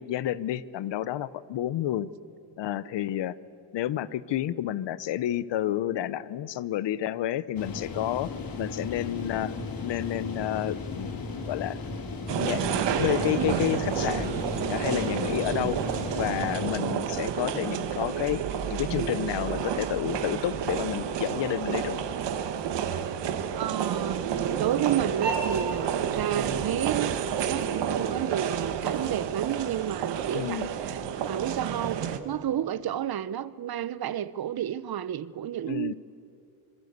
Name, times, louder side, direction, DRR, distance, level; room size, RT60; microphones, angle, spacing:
voice 1, 0.0-2.1 2.6-3.3 3.7-8.3 8.6-9.5 9.8-11.8 12.4-14.4 14.7-15.8 16.1-18.4 18.7-22.0 30.3-30.7 35.7-35.9, left 12 dB, 75° left, 0.9 m, -30 dB
sound 1, 7.6-16.7, left 4 dB, 50° left, 3.1 m, -36 dB
sound 2, 12.3-32.2, right 8 dB, 75° right, 1.6 m, -30 dB
voice 2, 23.6-27.2 27.5-35.9, right 10 dB, 55° right, 0.9 m, -31 dB
26.0 x 21.5 x 8.1 m
cardioid pair, 85°, 43 cm